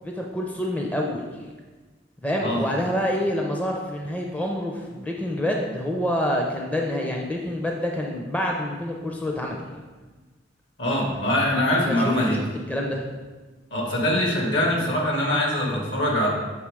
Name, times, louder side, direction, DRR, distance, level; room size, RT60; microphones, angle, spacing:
voice 1, 0.0-1.5 2.2-9.6 11.8-12.4 12.7-13.1, equal, 10° left, 0 dB, 0.6 m, -27 dB
voice 2, 10.8-12.4 13.7-16.3, left 1 dB, 70° left, -3 dB, 1.9 m, -23 dB
7.5 x 3.6 x 4.8 m, 1.3 s
head